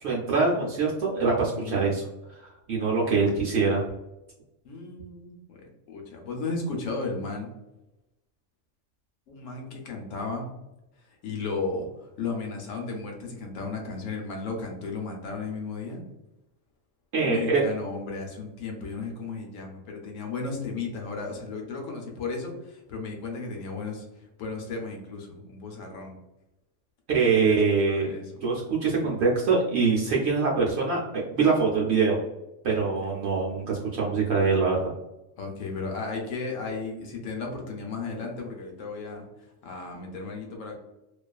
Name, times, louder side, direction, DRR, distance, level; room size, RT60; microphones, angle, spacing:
voice 1, 0.0-2.0 2.4-3.8 17.1-17.6 27.1-28.1 28.4-32.2 32.6-34.9, right 4 dB, 65° right, -3 dB, 0.7 m, -24 dB
voice 2, 1.5-1.9 2.8-3.2 4.6-5.6 5.9-7.5 9.3-10.5 11.1-16.0 17.2-26.2 27.3-28.4 32.8-33.1 35.4-39.3 39.6-40.8, left 4 dB, 70° left, 1 dB, 0.9 m, -35 dB
2.4 x 2.3 x 2.2 m, 0.95 s
omnidirectional pair, 1.5 m